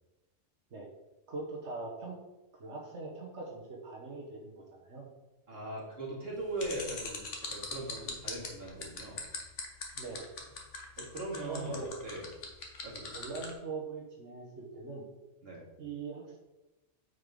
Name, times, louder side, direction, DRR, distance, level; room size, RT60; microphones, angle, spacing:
voice 1, 1.3-2.2 2.5-5.1 9.9-10.3 11.5-11.9 13.1-15.1 15.8-16.4, right 3 dB, 70° right, -1 dB, 1.5 m, -42 dB
voice 2, 5.5-9.2 11.0-12.3 12.8-13.1 15.4-15.6, right 2 dB, 55° right, -5 dB, 2.8 m, -40 dB
sound 1, 6.6-13.5, left 4 dB, 85° left, 1.7 m, -40 dB
9.2 x 5.4 x 3.8 m, 1.0 s
omnidirectional pair, 1.2 m